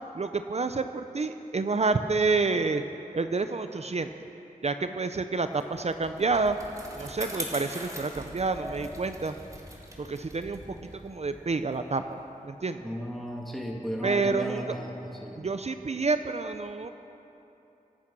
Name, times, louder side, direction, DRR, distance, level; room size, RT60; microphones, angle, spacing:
voice 1, 0.1-2.8 3.1-4.3 4.6-6.6 7.0-9.3 10.0-13.0 14.0-14.8 15.4-16.9, right 3 dB, 50° right, 9 dB, 0.6 m, -29 dB
Bicycle, 5.6-12.3, equal, 20° right, 2.7 m, -42 dB
voice 2, 12.8-15.4, equal, ahead, -1 dB, 1.8 m, -35 dB
24.5 x 8.9 x 6.1 m, 3.0 s
wide cardioid pair, 70°, 15 cm